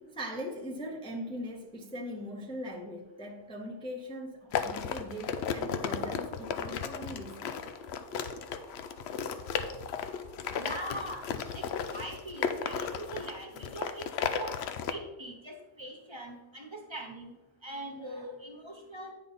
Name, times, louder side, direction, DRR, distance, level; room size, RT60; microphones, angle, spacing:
voice 1, 0.0-7.6 18.1-18.3, equal, 5° left, 0.6 m, -41 dB
sound 1, 4.5-14.9, left 7 dB, 80° left, 0.9 m, -34 dB
sound 2, 5.1-11.7, equal, 65° left, 2.2 m, -57 dB
voice 2, 10.6-11.3 11.5-14.6 14.9-17.3 17.6-19.1, right 1 dB, 25° right, 1.0 m, -42 dB
9.1 x 5.2 x 4.0 m
omnidirectional pair, 1.1 m